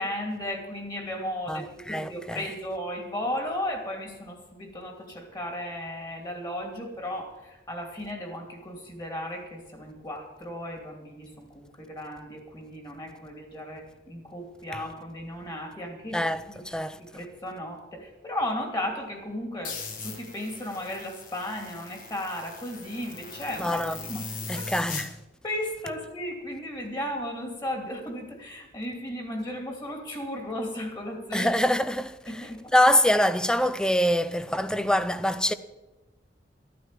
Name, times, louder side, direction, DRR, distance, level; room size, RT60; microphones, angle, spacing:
voice 1, 0.0-16.6 17.0-23.8 24.1-24.7 25.4-31.5 32.3-32.6, left 1 dB, 25° left, 2.7 m, -35 dB
voice 2, 1.5-2.5 14.7-14.8 16.1-17.0 23.6-24.0 24.5-25.2 31.3-32.4 32.7-35.5, left 1 dB, 5° left, 0.5 m, -25 dB
sound 1, 19.6-25.1, left 4 dB, 50° left, 1.9 m, -39 dB
13.5 x 9.4 x 7.5 m
head